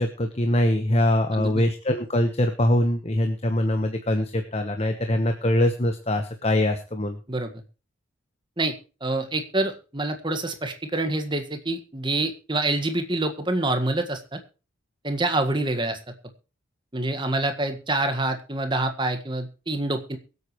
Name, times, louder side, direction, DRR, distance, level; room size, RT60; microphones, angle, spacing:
voice 1, 0.0-7.2, left 1 dB, 30° left, 6 dB, 1.2 m, -23 dB
voice 2, 1.3-1.6 7.3-7.5 8.6-8.7 9.0-14.4 15.0-16.0 16.9-20.2, right 2 dB, 25° right, 7 dB, 1.7 m, -26 dB
23.0 x 8.3 x 3.1 m, 0.34 s
head